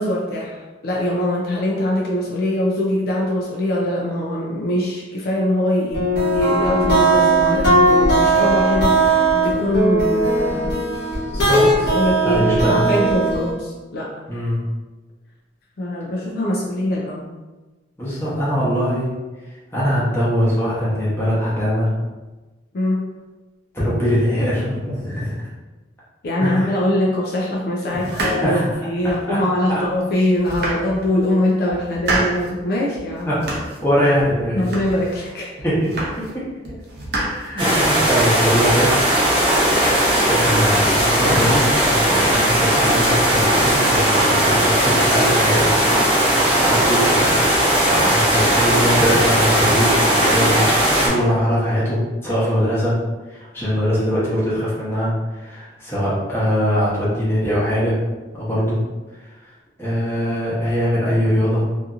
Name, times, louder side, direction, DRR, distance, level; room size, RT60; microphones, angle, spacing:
voice 1, 0.0-10.8 11.3-14.2 15.8-17.3 22.7-23.1 26.2-33.4 34.5-35.5 37.6-37.8 48.0-48.1, left 1 dB, 55° left, -3 dB, 0.4 m, -22 dB
sound 1, 5.9-13.5, right 2 dB, 75° left, 1.1 m, -18 dB
voice 2, 11.2-11.9 12.2-12.8 14.3-14.6 18.0-19.1 19.7-21.9 23.7-25.5 26.4-26.8 27.9-28.7 29.3-29.4 29.7-29.8 33.2-33.4 33.8-34.7 35.6-36.4 37.2-38.9 40.3-45.7 46.6-47.3 47.7-50.8 51.0-53.0 53.3-58.0 58.3-58.8 59.8-61.7, equal, 15° left, -8 dB, 0.9 m, -22 dB
sound 2, 28.0-29.3 29.8-29.9 30.3-31.3 31.7-32.5 32.9-33.9 34.2-35.2 35.6-36.4 36.6-38.0, right 2 dB, 60° right, 0.6 m, -28 dB
sound 3, 37.6-51.1, right 1 dB, 25° right, 0.8 m, -17 dB
2.7 x 2.5 x 2.4 m, 1.2 s
head